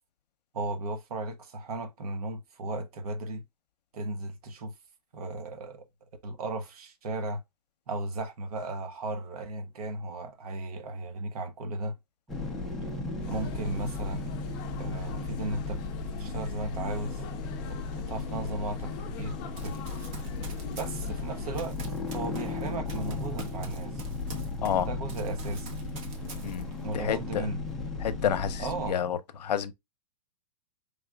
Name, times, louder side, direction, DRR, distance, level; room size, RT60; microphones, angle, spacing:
voice 1, 0.5-3.4 3.9-4.7 5.1-5.8 6.2-7.4 7.9-11.9 13.3-14.3 14.8-15.8 16.2-17.2 17.7-19.4 19.6-19.8 20.7-21.8 22.1-24.0 24.7-25.7 26.8-27.6 28.6-29.0, right 2 dB, 65° right, 1.1 m, -35 dB
sound 1, 12.3-28.9, left 3 dB, ahead, 0.5 m, -35 dB
sound 2, 13.2-21.6, left 11 dB, 35° left, 0.7 m, -44 dB
Run, 19.6-24.8 25.1-26.9, right 3 dB, 30° right, 0.9 m, -47 dB
voice 2, 26.4-27.5 28.0-29.7, left 9 dB, 85° left, 0.7 m, -30 dB
4.8 x 3.5 x 2.2 m
hypercardioid pair, 160°, 20 cm